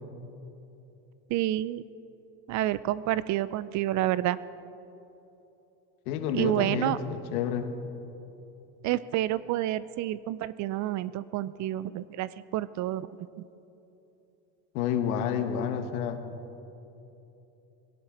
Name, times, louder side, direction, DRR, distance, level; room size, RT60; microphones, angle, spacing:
voice 1, 1.3-1.8 2.5-4.4 6.3-7.0 8.8-13.1, right 14 dB, 45° right, 18 dB, 0.5 m, -29 dB
voice 2, 6.1-7.7 14.7-16.2, left 8 dB, 75° left, 7 dB, 1.6 m, -29 dB
21.5 x 17.5 x 3.9 m, 3.0 s
supercardioid pair, 95°, 43 cm